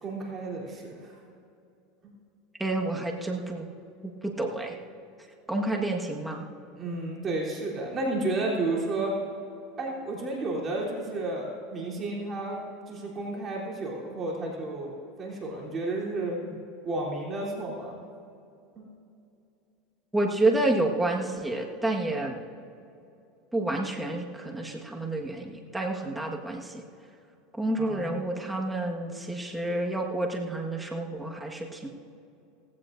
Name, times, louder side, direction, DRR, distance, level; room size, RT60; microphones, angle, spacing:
voice 1, 0.0-1.2 2.0-2.1 6.8-9.2 9.8-16.4 16.8-18.0 18.7-18.8 27.8-28.2, right 2 dB, 30° right, -4 dB, 3.4 m, -32 dB
voice 2, 2.6-3.7 4.2-4.8 5.5-6.4 20.1-22.4 23.5-26.8 27.6-31.9, right 2 dB, 5° right, 0 dB, 1.6 m, -29 dB
17.5 x 16.0 x 2.6 m, 2.6 s
supercardioid pair, 115°, 0 cm